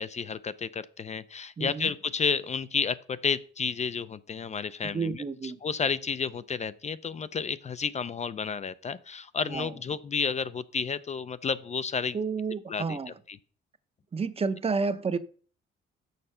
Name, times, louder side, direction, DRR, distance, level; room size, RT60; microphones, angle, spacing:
voice 1, 0.0-5.2 5.6-12.2 12.7-13.0 13.3-13.4, left 6 dB, 35° left, 0.5 m, -31 dB
voice 2, 1.6-1.9 4.9-5.6 9.5-9.7 12.1-13.1 14.1-15.2, right 4 dB, 30° right, 0.7 m, -30 dB
6.6 x 6.5 x 5.5 m
cardioid pair, 90°, 20 cm